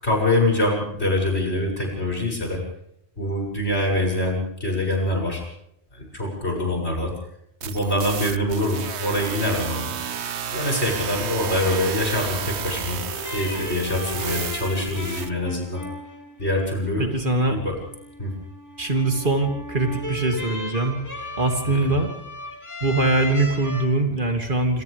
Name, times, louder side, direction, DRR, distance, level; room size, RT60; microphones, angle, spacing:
voice 1, 0.0-2.6 3.2-5.4 6.0-7.1 7.6-9.9 10.5-13.0 13.3-15.8 16.4-17.1 17.5-17.7 18.2-18.3 21.6-21.9, left 1 dB, 90° left, 0 dB, 8.1 m, -24 dB
sound 1, 7.6-15.3, right 8 dB, 90° right, 1.2 m, -32 dB
sound 2, 13.1-23.9, left 1 dB, 15° left, 3.1 m, -36 dB
voice 2, 17.0-17.6 18.8-21.0 21.4-22.1 22.8-24.8, right 2 dB, 50° right, 4 dB, 3.2 m, -22 dB
27.0 x 27.0 x 3.6 m, 0.76 s
omnidirectional pair, 1.1 m